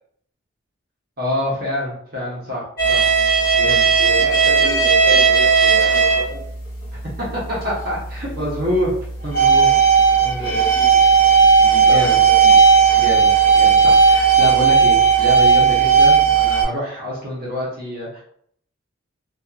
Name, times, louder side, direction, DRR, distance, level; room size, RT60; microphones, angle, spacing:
voice 1, 1.2-3.1 3.5-3.9 7.3-8.9 9.2-9.7 10.2-10.6 11.8-12.2 13.0-18.2, equal, 45° right, -5 dB, 0.9 m, -26 dB
sound 1, 2.8-6.4 6.8-7.0 7.6-7.7 9.0-16.6, right 6 dB, 45° left, 1.3 m, -14 dB
voice 2, 3.6-6.4 9.5-9.6 10.4-11.0 11.6-12.6, equal, 25° left, -8 dB, 1.2 m, -31 dB
2.7 x 2.4 x 2.4 m, 0.63 s
head